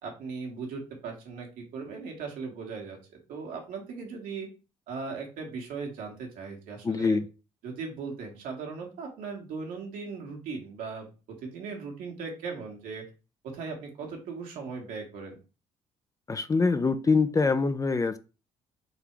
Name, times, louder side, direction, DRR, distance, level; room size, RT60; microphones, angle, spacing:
voice 1, 0.0-3.0 3.3-4.5 4.9-7.2 7.6-11.1 11.4-13.0 13.4-15.4, right 4 dB, 75° right, 1.5 m, -38 dB
voice 2, 6.8-7.3 16.3-18.2, left 4 dB, 25° left, 0.4 m, -24 dB
3.9 x 2.7 x 4.6 m
supercardioid pair, 65°, 14 cm